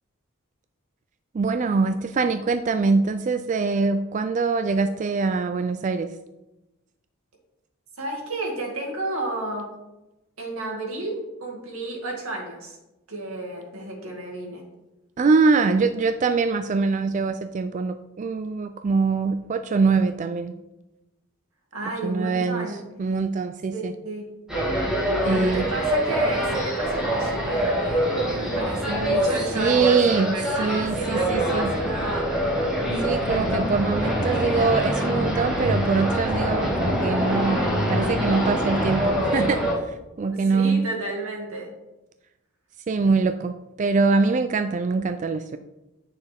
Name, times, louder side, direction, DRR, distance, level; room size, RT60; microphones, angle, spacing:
voice 1, 1.3-6.1 15.2-20.5 22.0-22.7 23.0-23.9 25.2-25.7 29.6-31.7 33.0-40.9 42.9-45.6, right 4 dB, 35° right, 9 dB, 0.3 m, -23 dB
voice 2, 8.0-9.7 10.4-12.8 13.1-14.6 21.7-22.8 23.7-24.3 25.2-32.3 40.3-41.7, right 2 dB, 85° right, -1 dB, 2.2 m, -32 dB
sound 1, 24.5-39.7, equal, 5° right, 2.1 m, -24 dB
9.1 x 6.5 x 3.5 m, 0.99 s
head